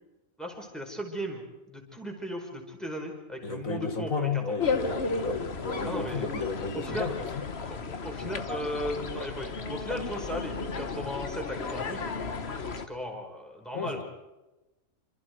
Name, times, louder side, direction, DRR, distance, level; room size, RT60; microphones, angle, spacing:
voice 1, 0.4-4.6 5.9-6.3 6.7-7.1 7.7-12.1 12.6-14.0, equal, ahead, 1 dB, 5.2 m, -37 dB
voice 2, 3.4-7.5 13.7-14.0, left 4 dB, 80° left, 6 dB, 2.7 m, -33 dB
sound 1, 4.6-12.9, left 4 dB, 50° left, 1.6 m, -34 dB
27.0 x 26.5 x 4.7 m, 1.0 s
omnidirectional pair, 1.4 m